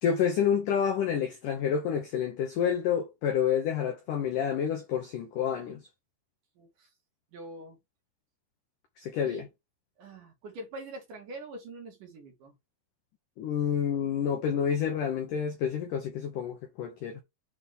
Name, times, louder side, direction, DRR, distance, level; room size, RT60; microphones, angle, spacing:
voice 1, 0.0-5.8 9.0-9.5 13.4-17.2, left 8 dB, 85° left, 1.8 m, -29 dB
voice 2, 6.6-6.9 7.3-7.8 9.1-9.4 10.0-12.6, right 2 dB, 50° right, 3.2 m, -44 dB
8.0 x 4.1 x 3.7 m
omnidirectional pair, 5.3 m